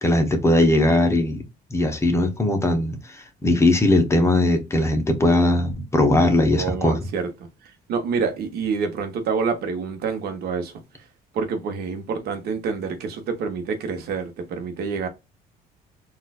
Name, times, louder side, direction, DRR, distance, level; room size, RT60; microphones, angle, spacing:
voice 1, 0.0-1.4 1.7-7.0, left 1 dB, 15° left, 0.8 m, -19 dB
voice 2, 6.6-10.8 11.3-15.1, right 5 dB, 70° right, 1.0 m, -27 dB
4.1 x 2.4 x 2.3 m
cardioid pair, 110°, 17 cm